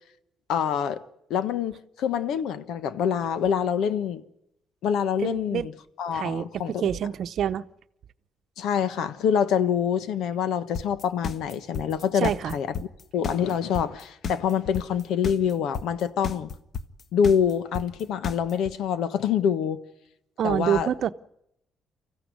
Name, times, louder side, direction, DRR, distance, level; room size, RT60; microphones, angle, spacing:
voice 1, 0.5-1.0 1.3-4.2 4.8-5.7 6.0-6.8 8.6-12.9 13.1-16.5 17.1-19.8 20.4-20.9, left 8 dB, 85° left, 1.3 m, -26 dB
voice 2, 5.2-5.7 6.1-7.6 12.1-12.5 20.4-21.1, right 9 dB, 65° right, 0.8 m, -27 dB
sound 1, 10.7-18.7, left 6 dB, 55° left, 1.4 m, -32 dB
25.0 x 15.5 x 9.6 m
cardioid pair, 90°, 0 cm